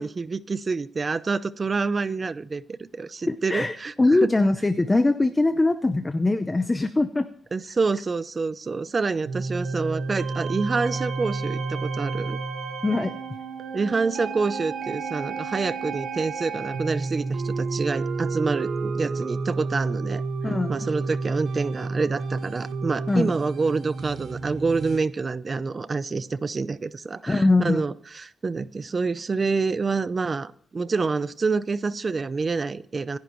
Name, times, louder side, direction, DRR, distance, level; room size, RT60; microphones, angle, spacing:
voice 1, 0.0-2.6 3.0-4.3 7.5-12.4 13.7-20.2 20.7-33.2, right 4 dB, 30° right, 15 dB, 0.6 m, -27 dB
voice 2, 3.3-7.3 12.8-13.1 20.4-20.9 23.1-23.3 27.3-27.8, left 2 dB, 15° left, 9 dB, 0.7 m, -22 dB
sound 1, 9.2-25.0, right 4 dB, 70° right, 1.6 m, -31 dB
26.5 x 10.5 x 3.1 m, 0.63 s
wide cardioid pair, 140°, 0 cm